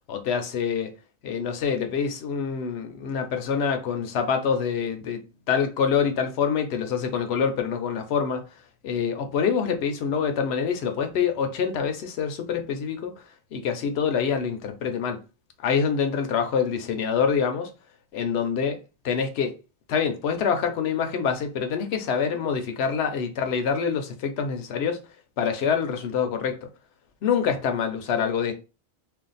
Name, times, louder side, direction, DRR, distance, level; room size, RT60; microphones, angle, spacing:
voice 1, 0.1-0.9 1.2-8.4 8.8-13.1 13.5-15.2 15.6-17.7 18.1-18.8 19.0-19.5 19.9-25.0 25.4-26.6 27.2-28.5, left 6 dB, 75° left, 0.9 m, -26 dB
2.5 x 2.4 x 3.9 m
omnidirectional pair, 1.1 m